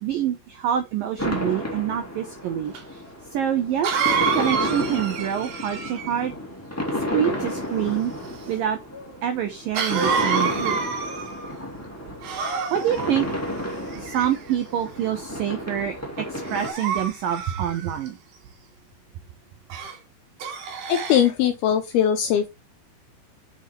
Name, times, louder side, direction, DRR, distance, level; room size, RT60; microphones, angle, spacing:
voice 1, 0.0-3.0 3.3-6.3 7.1-8.1 8.5-8.8 9.2-10.9 12.7-13.3 14.0-18.2, right 10 dB, 85° right, 2.0 m, -26 dB
sound 1, 1.2-16.7, left 1 dB, 15° left, 0.4 m, -32 dB
Cough, 2.7-2.8 3.8-6.2 9.7-11.5 12.2-13.1 13.9-14.6 15.2-15.5 16.5-18.1 19.7-20.0 20.4-21.3, right 6 dB, 65° right, 3.8 m, -28 dB
voice 2, 20.9-22.5, left 9 dB, 80° left, 2.3 m, -20 dB
7.5 x 7.2 x 3.2 m
omnidirectional pair, 5.4 m